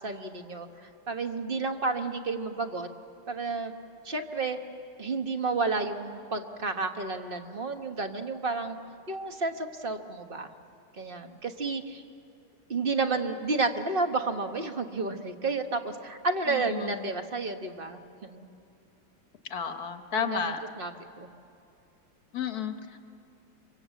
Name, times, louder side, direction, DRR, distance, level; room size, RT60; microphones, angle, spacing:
voice 1, 0.0-2.9 3.3-3.7 4.0-4.6 5.0-8.8 9.1-10.5 10.9-12.0 12.7-18.5 20.2-20.9 21.2-21.3, right 3 dB, 35° right, 6 dB, 1.0 m, -31 dB
voice 2, 16.5-17.1 19.5-20.6 22.3-23.0, left 7 dB, 55° left, 8 dB, 1.4 m, -32 dB
27.5 x 24.5 x 8.2 m, 2.6 s
omnidirectional pair, 2.3 m